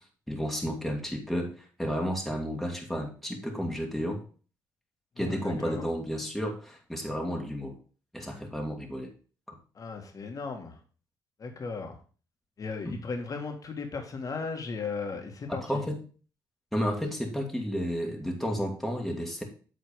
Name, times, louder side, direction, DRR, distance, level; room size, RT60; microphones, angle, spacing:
voice 1, 0.3-4.2 5.2-7.8 8.1-9.1 9.5-9.6 12.8-12.9 15.5-16.0 16.7-19.4, equal, ahead, 1 dB, 2.1 m, -32 dB
voice 2, 5.2-5.9 9.7-10.8 11.4-12.0 12.6-15.8, left 4 dB, 45° left, 4 dB, 1.9 m, -36 dB
8.2 x 4.0 x 5.2 m, 0.39 s
supercardioid pair, 70°, 8 cm